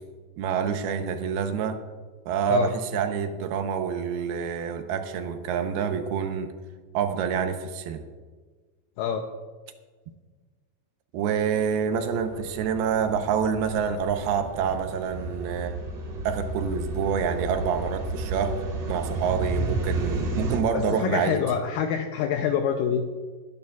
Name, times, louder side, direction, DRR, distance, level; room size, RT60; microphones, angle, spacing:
voice 1, 0.4-1.8 2.3-6.6 6.9-8.0 11.1-15.8 16.2-21.4, right 7 dB, 80° right, 7 dB, 2.7 m, -27 dB
sound 1, 11.9-20.6, right 2 dB, 55° right, 3.3 m, -32 dB
voice 2, 20.7-23.0, left 8 dB, 80° left, 5 dB, 2.0 m, -26 dB
20.5 x 11.0 x 2.4 m, 1.4 s
omnidirectional pair, 4.6 m